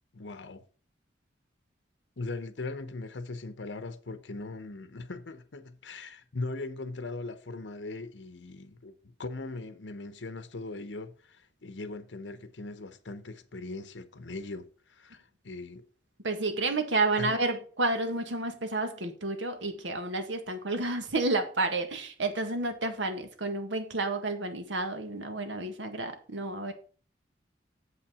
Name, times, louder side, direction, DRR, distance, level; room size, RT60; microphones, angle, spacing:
voice 1, 0.1-0.6 2.2-15.9 17.2-17.4, left 2 dB, 80° left, 0.8 m, -40 dB
voice 2, 16.2-26.7, right 2 dB, 85° right, 1.6 m, -30 dB
7.8 x 5.9 x 6.1 m
head